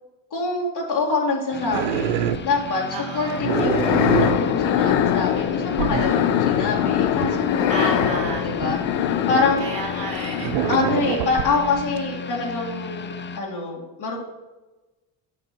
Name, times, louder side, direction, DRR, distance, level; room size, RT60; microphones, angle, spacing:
voice 1, 0.3-8.0 8.4-8.8 9.0-9.6 10.7-14.2, left 3 dB, 50° left, -3 dB, 2.6 m, -25 dB
sound 1, 1.5-13.4, left 5 dB, 25° left, 0.6 m, -35 dB
sound 2, 1.7-2.9 3.2-4.9 5.3-5.4 5.8-6.1 6.6-9.4 10.1-12.1, right 10 dB, 85° right, 0.7 m, -27 dB
voice 2, 2.9-3.4 7.7-8.5 9.2-9.3 9.6-10.6, right 3 dB, 50° right, -6 dB, 3.7 m, -31 dB
sound 3, 3.3-11.3, left 10 dB, 85° left, 0.7 m, -23 dB
8.6 x 6.0 x 6.1 m, 1.1 s
hypercardioid pair, 55°, 49 cm